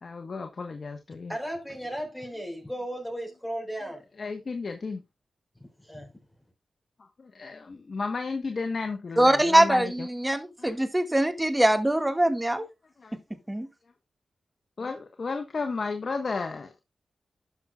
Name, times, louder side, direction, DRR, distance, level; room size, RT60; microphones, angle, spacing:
voice 1, 0.0-1.3 4.2-5.0 7.0-10.1 10.6-10.8 13.0-13.2 14.8-16.8, left 4 dB, 60° left, 1.2 m, -33 dB
voice 2, 1.3-4.0 5.8-6.1, equal, 10° left, 4.6 m, -35 dB
voice 3, 9.2-12.6 13.5-13.7, right 1 dB, 15° right, 1.8 m, -22 dB
12.5 x 6.3 x 2.4 m
cardioid pair, 45°, 0 cm